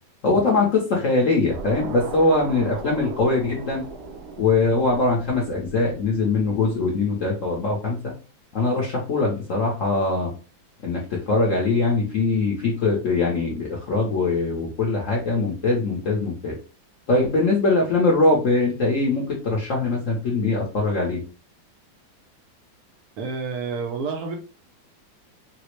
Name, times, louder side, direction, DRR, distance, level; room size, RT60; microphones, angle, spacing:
voice 1, 0.2-3.8 4.4-8.0 8.5-10.3 10.8-16.6 17.1-21.2, left 3 dB, 60° left, -3 dB, 0.8 m, -22 dB
sound 1, 1.5-6.7, right 4 dB, 85° right, 1.4 m, -38 dB
voice 2, 23.2-24.4, right 4 dB, 70° right, 3 dB, 0.9 m, -29 dB
4.0 x 2.0 x 3.0 m, 0.34 s
omnidirectional pair, 2.2 m